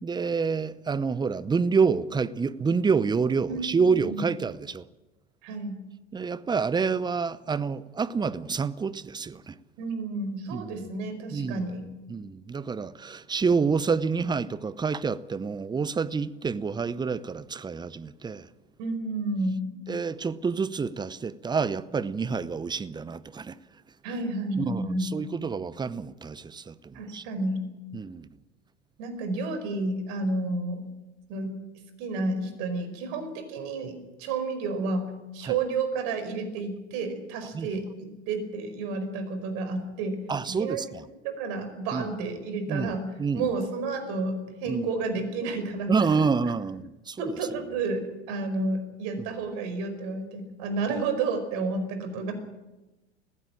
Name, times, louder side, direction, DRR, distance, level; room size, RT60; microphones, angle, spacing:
voice 1, 0.0-4.8 6.1-9.6 10.5-10.9 11.3-11.7 12.1-18.5 19.9-23.6 24.6-27.2 27.9-28.3 35.4-35.5 37.5-37.7 40.3-41.0 41.9-42.1 42.7-42.9 43.2-43.5 44.7-44.9 45.9-47.4 49.2-49.3, right 5 dB, 10° right, 0.7 m, -28 dB
voice 2, 3.5-4.3 5.4-5.8 9.8-11.8 18.8-19.7 24.0-25.1 26.9-27.6 29.0-30.8 31.3-31.5 32.0-40.8 41.2-43.1 43.3-46.1 47.2-52.3, right 3 dB, 55° right, 5.1 m, -31 dB
20.5 x 16.0 x 8.9 m
figure-of-eight pair, 85°, 35 cm